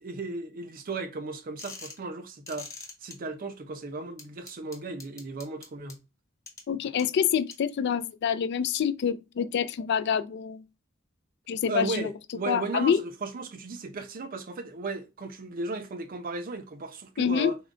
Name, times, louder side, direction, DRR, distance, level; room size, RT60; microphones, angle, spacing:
voice 1, 0.0-2.7 3.0-6.0 11.7-17.6, right 3 dB, 45° right, 0.5 m, -35 dB
sound 1, 1.6-2.0 2.5-3.1 4.2-5.9 6.5-6.6 7.0-7.1 7.5-7.6, left 3 dB, 15° left, 0.9 m, -42 dB
voice 2, 6.7-10.6 11.5-12.1 12.5-13.0 17.2-17.5, left 7 dB, 55° left, 0.3 m, -26 dB
3.6 x 2.2 x 3.6 m
head